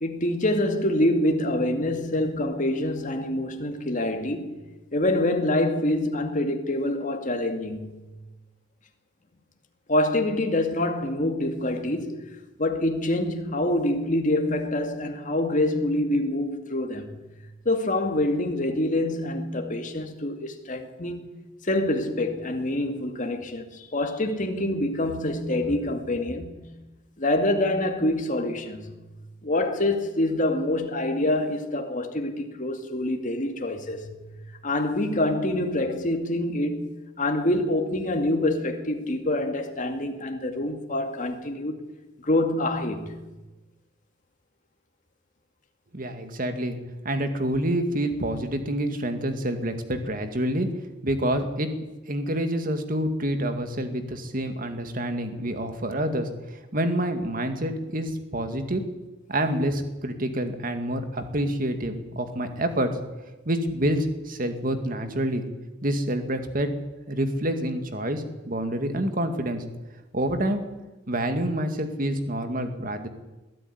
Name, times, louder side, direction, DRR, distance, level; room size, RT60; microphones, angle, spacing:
voice 1, 0.0-4.6 4.9-8.0 9.9-12.3 12.6-17.2 17.7-21.3 21.6-26.6 27.2-29.0 29.4-34.3 34.6-36.9 37.2-41.8 42.2-43.1, left 1 dB, 40° left, 2.3 m, -26 dB
voice 2, 45.9-46.8 47.0-50.7 51.0-51.7 52.1-56.3 56.7-58.8 59.3-62.9 63.5-65.4 65.8-66.7 67.1-69.6 70.1-70.6 71.1-73.1, right 1 dB, 45° right, 2.1 m, -27 dB
21.0 x 13.0 x 9.8 m
head